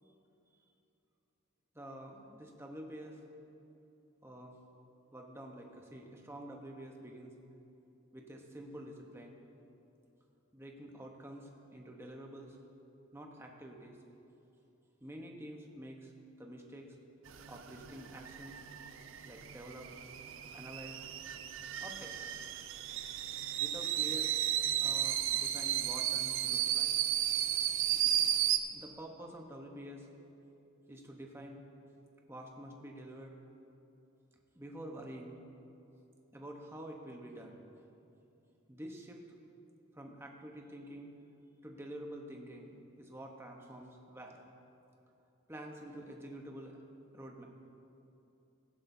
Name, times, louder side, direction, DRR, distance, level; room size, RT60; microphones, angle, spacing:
voice 1, 1.7-3.2 4.2-4.6 5.1-7.3 8.1-9.4 10.5-12.6 13.1-14.0 15.0-16.1 16.4-16.9 17.5-18.6 19.3-19.9 20.5-21.0 21.8-22.2 23.6-24.3 24.8-26.9 27.9-28.4 28.7-30.1 30.9-31.6 32.3-33.4 34.5-35.4 36.3-37.6 38.7-39.2 39.9-41.1 41.6-42.7 43.0-44.4 45.5-46.8 47.1-47.4, right 1 dB, 10° right, 1 dB, 0.9 m, -48 dB
sound 1, 17.3-28.6, right 11 dB, 60° right, 0.5 m, -34 dB
16.5 x 11.5 x 2.7 m, 2.8 s
head